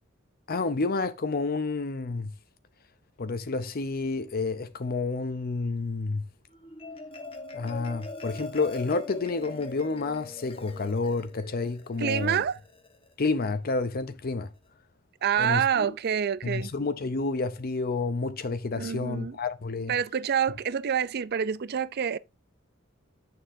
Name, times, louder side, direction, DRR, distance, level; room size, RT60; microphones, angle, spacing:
voice 1, 0.5-2.3 3.2-6.2 7.5-12.4 13.2-14.5 15.4-15.6 16.4-20.0, left 3 dB, 45° left, 0.6 m, -29 dB
Marimba xylophone, 6.5-13.1, left 3 dB, 25° left, 1.3 m, -42 dB
voice 2, 12.0-12.6 15.2-16.7 18.8-19.4 19.9-22.2, right 8 dB, 50° right, 0.4 m, -27 dB
9.4 x 6.7 x 2.7 m
head